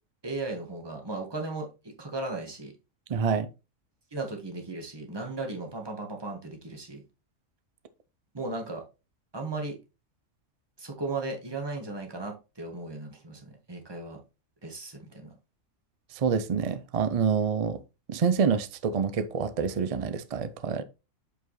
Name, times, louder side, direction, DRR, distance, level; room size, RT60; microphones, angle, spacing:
voice 1, 0.2-2.7 4.1-7.0 8.3-8.8 9.3-9.8 10.8-14.2 14.6-15.3, right 3 dB, 20° right, 1.6 m, -36 dB
voice 2, 3.1-3.5 16.2-17.8 18.1-20.8, right 6 dB, 70° right, 0.3 m, -27 dB
8.2 x 4.8 x 3.1 m
omnidirectional pair, 1.4 m